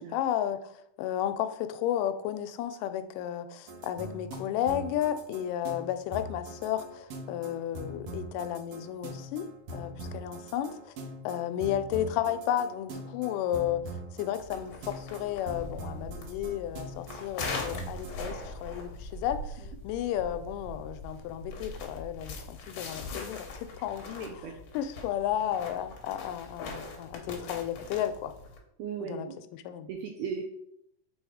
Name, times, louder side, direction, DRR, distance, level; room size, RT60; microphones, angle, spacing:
voice 1, 0.0-10.9 11.2-13.8 14.1-28.3 29.0-29.3 29.5-29.9, left 11 dB, 90° left, 10 dB, 2.2 m, -33 dB
sound 1, 3.7-18.3, right 1 dB, 65° right, 1.4 m, -42 dB
sound 2, 14.4-28.6, left 3 dB, 75° left, 1.2 m, -41 dB
voice 2, 24.2-24.5 28.8-29.4 29.9-30.4, right 6 dB, 80° right, 2 dB, 1.6 m, -37 dB
5.9 x 3.5 x 4.8 m, 0.75 s
omnidirectional pair, 3.7 m